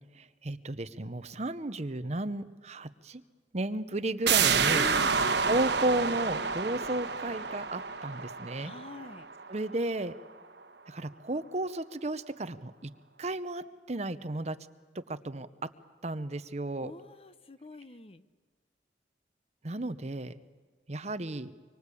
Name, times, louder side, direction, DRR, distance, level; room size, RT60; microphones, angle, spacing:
voice 1, 0.2-3.2 3.5-4.9 5.5-8.7 9.5-10.1 10.9-12.9 13.2-14.6 15.1-15.5 16.0-16.9 19.6-20.3 20.9-21.5, right 2 dB, 40° right, 12 dB, 0.9 m, -33 dB
sound 1, 4.3-9.7 10.1-10.2, right 6 dB, 75° right, 1.3 m, -29 dB
voice 2, 4.7-5.2 8.5-9.3 16.8-18.2, left 3 dB, 35° left, 13 dB, 0.8 m, -44 dB
25.5 x 24.0 x 8.5 m, 1.5 s
head